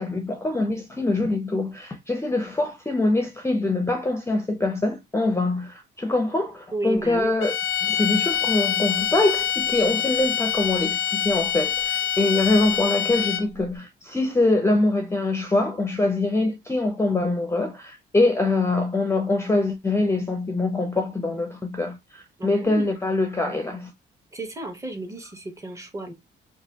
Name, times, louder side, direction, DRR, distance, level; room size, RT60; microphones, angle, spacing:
voice 1, 0.0-7.6 7.8-23.9, left 2 dB, 15° left, 0.5 m, -24 dB
voice 2, 6.7-7.3 22.4-22.9 24.3-26.1, right 2 dB, 15° right, 0.9 m, -33 dB
sound 1, 7.4-13.6, left 10 dB, 80° left, 0.4 m, -25 dB
3.0 x 2.3 x 2.8 m
cardioid pair, 90°, 20 cm